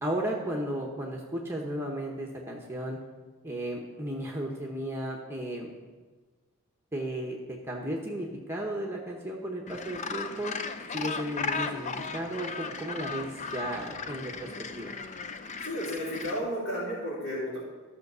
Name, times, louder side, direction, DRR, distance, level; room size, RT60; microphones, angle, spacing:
voice 1, 0.0-3.0 3.4-5.7 6.9-10.5 10.9-14.9, right 1 dB, 10° right, -1 dB, 0.9 m, -34 dB
Gull seagull, 9.7-16.4, left 4 dB, 35° left, 0.6 m, -36 dB
voice 2, 15.6-17.6, equal, 70° left, -10 dB, 3.7 m, -33 dB
13.5 x 5.8 x 6.7 m, 1.4 s
head